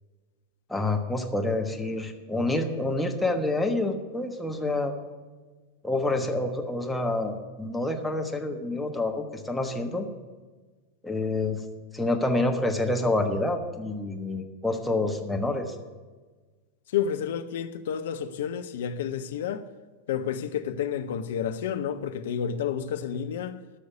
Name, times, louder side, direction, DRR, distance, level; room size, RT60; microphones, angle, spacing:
voice 1, 0.7-4.9 5.8-10.1 11.0-11.6 11.9-15.8, left 2 dB, 5° left, 1.3 m, -27 dB
voice 2, 16.9-19.6 20.1-23.6, left 8 dB, 55° left, 0.7 m, -30 dB
13.0 x 6.5 x 8.1 m
figure-of-eight pair, 90°, 0 cm